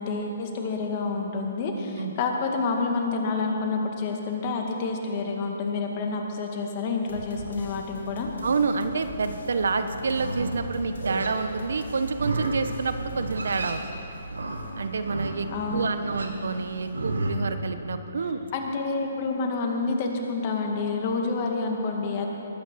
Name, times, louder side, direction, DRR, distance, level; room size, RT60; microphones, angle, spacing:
voice 1, 0.0-8.3 15.5-15.9 18.5-22.3, left 4 dB, 35° left, 2 dB, 2.1 m, -28 dB
sound 1, 7.1-13.9, left 1 dB, 75° left, 2.7 m, -42 dB
voice 2, 8.4-13.8 14.8-15.5 15.7-18.4, right 4 dB, 75° right, 9 dB, 1.1 m, -28 dB
Livestock farm animals working animals, 10.0-17.3, right 2 dB, 90° right, 1.8 m, -33 dB
20.0 x 9.3 x 6.4 m, 2.9 s
hypercardioid pair, 145°, 0 cm